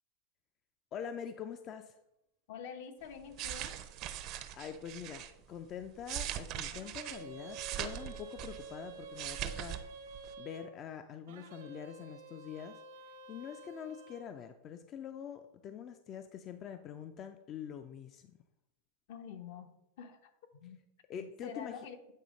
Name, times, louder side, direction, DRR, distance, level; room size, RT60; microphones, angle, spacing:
voice 1, 0.9-2.0 4.5-9.8 10.4-12.8 13.3-18.3 21.1-21.7, left 8 dB, 35° left, 8 dB, 0.4 m, -45 dB
voice 2, 2.5-3.8 19.1-19.7 20.0-20.8 21.1-22.0, left 7 dB, 70° left, 7 dB, 0.9 m, -47 dB
sound 1, 3.1-5.3 5.8-8.8 9.0-9.8 10.1-10.3, right 11 dB, 45° right, 0.6 m, -41 dB
sound 2, 6.7-10.7 11.3-14.3, right 4 dB, 80° right, 1.0 m, -50 dB
8.4 x 3.1 x 5.1 m, 0.86 s
supercardioid pair, 140°, 0 cm